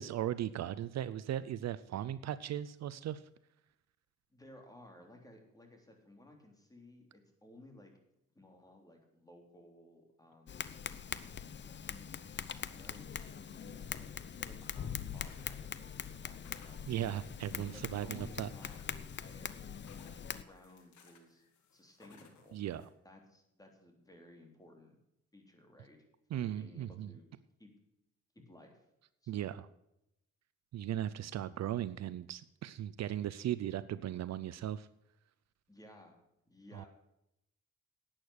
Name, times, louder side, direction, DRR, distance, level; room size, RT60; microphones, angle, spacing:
voice 1, 0.0-3.2 16.9-18.5 22.5-22.8 26.3-27.1 29.3-29.7 30.7-34.9 36.7-36.9, right 11 dB, 60° right, 15 dB, 0.6 m, -37 dB
voice 2, 4.3-7.9 8.3-10.6 11.5-12.1 12.3-17.0 17.7-21.4 21.7-22.6 23.0-25.0 25.3-26.0 26.3-27.3 27.6-27.7 28.3-28.9 29.2-29.5 35.7-36.2 36.4-36.9, left 1 dB, 10° left, 3 dB, 3.5 m, -58 dB
Tap, 10.5-20.4, left 7 dB, 35° left, 0.7 m, -43 dB
sound 1, 14.4-22.9, left 5 dB, 70° left, 2.2 m, -64 dB
11.5 x 8.9 x 6.5 m, 0.83 s
cardioid pair, 90°, 30 cm